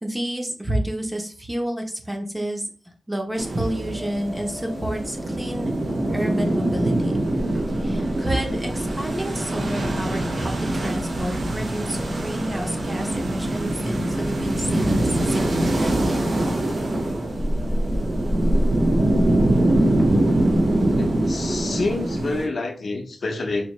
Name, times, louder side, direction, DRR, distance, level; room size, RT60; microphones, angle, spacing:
voice 1, 0.0-2.7 3.1-5.7 6.1-7.2 7.8-16.2, right 1 dB, 15° right, 0.6 m, -29 dB
sound 1, 3.4-22.5, right 1 dB, 60° right, 1.0 m, -23 dB
sound 2, 3.6-22.0, equal, 75° right, 2.1 m, -39 dB
voice 2, 21.0-23.7, left 3 dB, 55° left, 0.6 m, -28 dB
4.2 x 2.7 x 3.0 m
wide cardioid pair, 170°, 0 cm